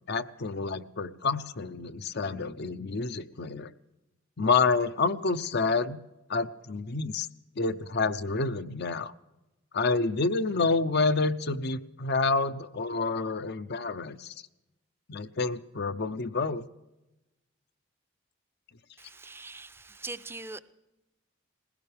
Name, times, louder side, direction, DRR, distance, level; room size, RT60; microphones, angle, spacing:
voice 1, 0.1-3.7 4.4-6.0 6.3-7.3 7.6-9.1 9.7-14.3 15.1-16.6, left 4 dB, 55° left, 0.7 m, -28 dB
voice 2, 19.0-20.6, right 3 dB, 10° right, 0.5 m, -42 dB
20.5 x 17.0 x 3.4 m
head